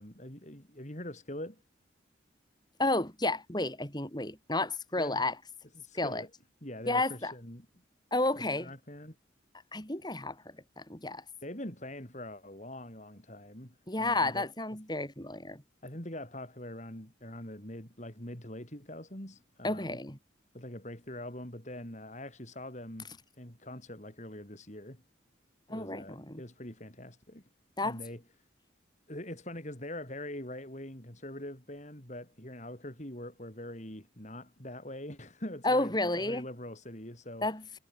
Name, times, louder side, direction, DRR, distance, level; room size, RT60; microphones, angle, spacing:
voice 1, 0.0-1.6 5.0-5.2 5.8-6.3 6.6-7.7 8.4-9.2 11.4-14.5 15.8-20.0 20.5-23.1 23.4-25.0 25.7-27.5 27.8-28.2 29.1-36.0 36.3-37.5, left 1 dB, 40° left, 5.3 m, -43 dB
voice 2, 2.8-5.3 5.9-6.2 6.9-7.3 8.1-8.7 9.7-11.2 13.9-15.6 19.6-20.2 25.7-26.4 27.8-28.0 35.6-36.5 37.4-37.8, left 2 dB, 20° left, 4.5 m, -31 dB
head